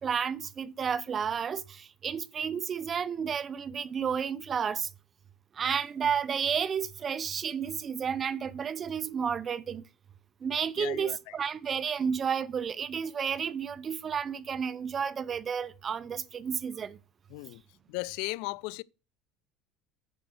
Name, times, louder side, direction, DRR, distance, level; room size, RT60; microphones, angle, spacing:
voice 1, 0.0-4.9 5.5-9.8 10.4-17.0, right 7 dB, 30° right, 0.5 m, -31 dB
voice 2, 10.8-11.4 17.3-17.6 17.9-18.8, left 22 dB, 75° left, 0.4 m, -36 dB
8.9 x 5.2 x 6.2 m
cardioid pair, 140°, 0 cm